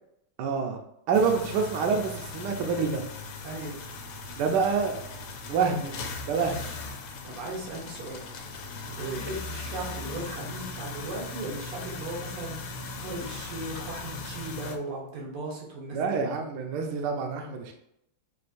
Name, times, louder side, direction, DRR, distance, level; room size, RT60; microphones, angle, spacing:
voice 1, 0.4-0.8 1.1-3.0 4.4-5.0 5.5-6.0 6.3-6.7 9.0-9.2 15.9-17.7, right 5 dB, 70° right, 3 dB, 1.0 m, -27 dB
sound 1, 1.1-14.8, left 3 dB, 80° left, 1.5 m, -39 dB
voice 2, 3.4-3.8 7.2-8.2 9.0-16.1, right 2 dB, 90° right, -2 dB, 2.0 m, -37 dB
6.3 x 2.5 x 2.6 m, 0.78 s
omnidirectional pair, 2.4 m